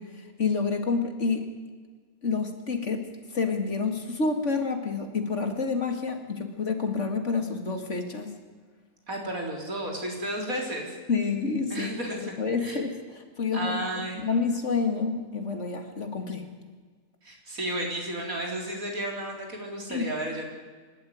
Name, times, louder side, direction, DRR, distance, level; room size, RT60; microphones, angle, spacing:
voice 1, 0.0-1.5 2.2-3.1 3.3-8.3 11.1-11.9 12.2-13.9 14.2-16.4 19.9-20.1, left 4 dB, 55° left, 6 dB, 2.5 m, -28 dB
voice 2, 9.1-11.0 11.7-12.2 12.6-12.8 13.5-14.2 17.2-20.5, right 1 dB, 70° right, 1 dB, 4.4 m, -33 dB
24.5 x 12.5 x 9.5 m, 1.5 s
omnidirectional pair, 1.5 m